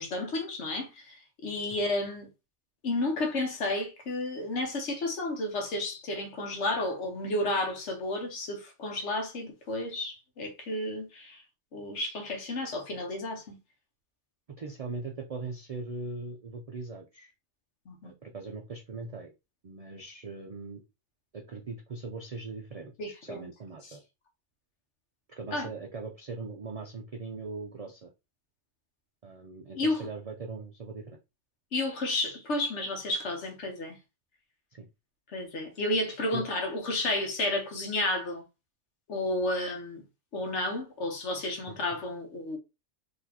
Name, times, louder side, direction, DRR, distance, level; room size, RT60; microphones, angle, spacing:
voice 1, 0.0-2.3 2.8-11.4 11.7-13.6 17.9-18.1 23.0-23.5 23.9-24.0 25.5-25.7 29.8-30.0 31.7-34.0 35.3-38.4 39.1-40.0 40.3-42.6, left 2 dB, 70° left, 1.2 m, -32 dB
voice 2, 14.6-17.3 18.0-19.3 19.6-20.8 21.3-24.0 25.3-28.1 29.2-31.2 34.7-34.9 36.3-36.5 41.8-41.9, right 3 dB, 60° right, 0.4 m, -40 dB
4.0 x 2.9 x 2.8 m
omnidirectional pair, 1.2 m